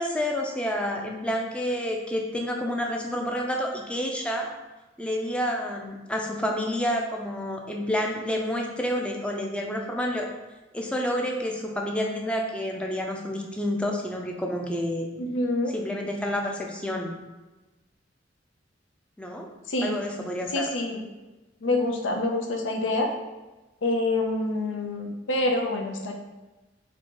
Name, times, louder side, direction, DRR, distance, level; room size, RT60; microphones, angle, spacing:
voice 1, 0.0-4.5 5.0-10.3 10.7-15.1 15.7-17.1 19.2-19.5 19.8-20.7, equal, 5° left, 0 dB, 0.5 m, -29 dB
voice 2, 15.2-15.7 19.7-20.0 20.5-21.0 21.6-23.1 23.8-26.1, left 2 dB, 80° left, 2 dB, 0.6 m, -26 dB
3.7 x 2.8 x 3.8 m, 1.1 s
head